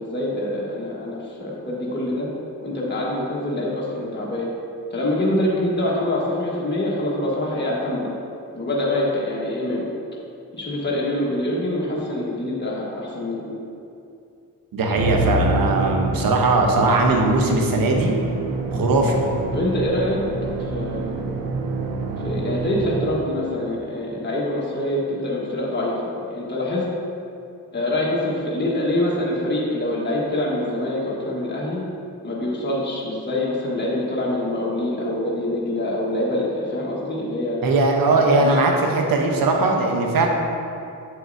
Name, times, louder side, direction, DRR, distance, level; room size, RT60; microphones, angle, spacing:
voice 1, 0.0-2.3 2.6-4.5 4.9-8.1 8.5-9.8 10.5-13.6 19.5-20.2 20.7-21.2 22.2-26.0 26.3-26.8 27.7-31.8 32.2-37.6 38.2-38.6, left 1 dB, 30° left, -5 dB, 1.4 m, -25 dB
voice 2, 14.7-18.1 18.7-19.2 37.6-40.3, right 2 dB, 70° right, 1 dB, 1.0 m, -19 dB
Musical instrument, 15.0-23.5, right 2 dB, 90° right, 0.6 m, -27 dB
7.5 x 6.4 x 2.7 m, 2.6 s
cardioid pair, 55°, 35 cm